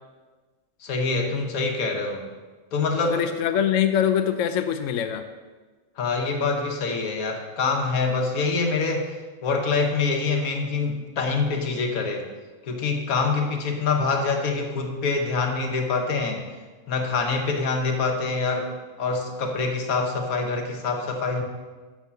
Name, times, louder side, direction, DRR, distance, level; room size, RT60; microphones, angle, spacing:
voice 1, 0.8-2.3 2.7-3.3 6.0-9.1 9.4-12.3 12.7-16.4 16.9-18.7 19.0-21.4, left 4 dB, 90° left, 3 dB, 1.5 m, -25 dB
voice 2, 3.0-5.2, left 9 dB, 70° left, 8 dB, 0.9 m, -23 dB
7.2 x 6.8 x 5.8 m, 1.3 s
omnidirectional pair, 1.4 m